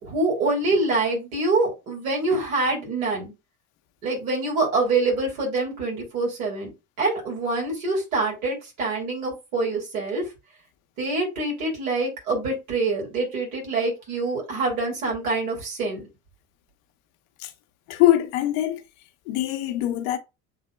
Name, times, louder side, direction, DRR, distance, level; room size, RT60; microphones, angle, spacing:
voice 1, 0.0-3.3 4.0-6.7 7.0-10.3 11.0-16.1, right 3 dB, 85° right, 3.0 m, -25 dB
voice 2, 17.9-18.8 19.3-20.2, left 14 dB, 80° left, 0.9 m, -22 dB
7.7 x 2.9 x 2.2 m
hypercardioid pair, 70°, 41 cm